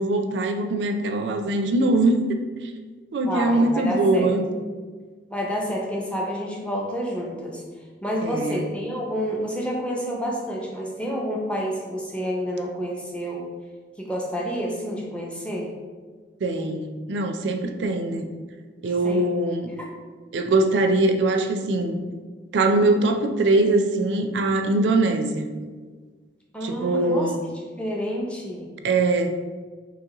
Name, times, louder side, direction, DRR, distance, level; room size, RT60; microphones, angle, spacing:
voice 1, 0.0-2.7 3.1-4.4 8.2-8.6 16.4-18.3 18.8-19.7 20.3-22.0 22.5-25.5 26.6-27.4 28.8-29.3, right 2 dB, 70° right, 6 dB, 0.4 m, -22 dB
voice 2, 3.3-4.3 5.3-7.6 8.0-13.4 14.0-15.7 19.0-19.3 19.8-19.9 26.5-27.3 27.8-28.7, equal, 5° left, -2 dB, 0.5 m, -29 dB
3.8 x 2.9 x 2.9 m, 1.5 s
head